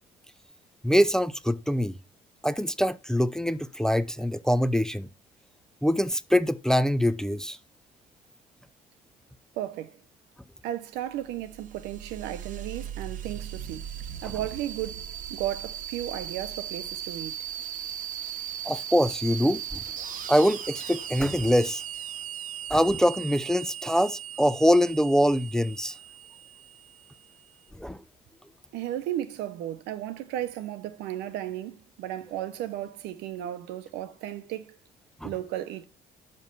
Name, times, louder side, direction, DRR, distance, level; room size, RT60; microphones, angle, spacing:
voice 1, 0.8-1.9 2.4-5.1 5.8-7.6 18.6-19.8 20.3-21.8 22.7-25.9 27.8-28.0 35.2-35.3, equal, 5° left, 0.4 m, -24 dB
voice 2, 9.5-10.0 10.6-13.9 14.2-17.4 28.7-34.8 35.2-35.8, right 12 dB, 90° right, 0.9 m, -34 dB
sound 1, 11.2-27.5, right 9 dB, 50° right, 0.8 m, -38 dB
6.3 x 5.4 x 5.5 m
cardioid pair, 110°, 17 cm